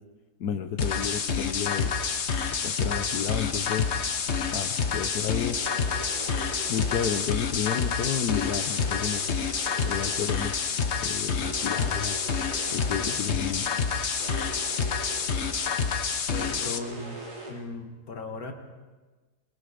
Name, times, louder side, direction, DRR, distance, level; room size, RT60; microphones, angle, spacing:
voice 1, 0.4-1.9 2.6-3.9 4.5-5.6 6.7-9.4 9.8-10.5 11.0-12.2 12.7-13.7, left 9 dB, 90° left, 6 dB, 1.4 m, -31 dB
sound 1, 0.8-16.8, left 5 dB, 50° left, 1.3 m, -28 dB
sound 2, 5.5-7.6 8.3-10.8 11.4-13.5 14.2-15.7 16.4-17.5, right 1 dB, 85° right, 4.5 m, -42 dB
voice 2, 16.3-17.2 17.5-18.5, left 3 dB, 70° left, 4 dB, 2.4 m, -37 dB
24.0 x 21.5 x 5.1 m, 1.3 s
omnidirectional pair, 1.6 m